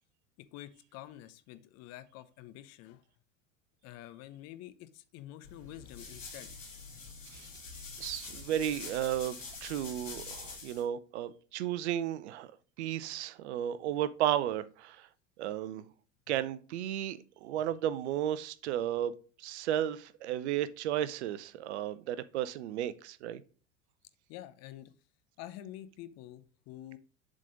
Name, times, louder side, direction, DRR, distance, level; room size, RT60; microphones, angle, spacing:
voice 1, 0.4-3.0 3.8-6.6 6.9-7.0 24.3-24.9 25.4-27.0, left 13 dB, 45° left, 0.8 m, -48 dB
sound 1, 5.4-10.8, left 4 dB, 85° left, 1.7 m, -45 dB
voice 2, 8.0-9.4 9.6-12.5 12.8-15.1 15.4-15.8 16.3-23.4, right 11 dB, 60° right, 0.7 m, -34 dB
7.4 x 3.9 x 5.0 m
figure-of-eight pair, 80°, 37 cm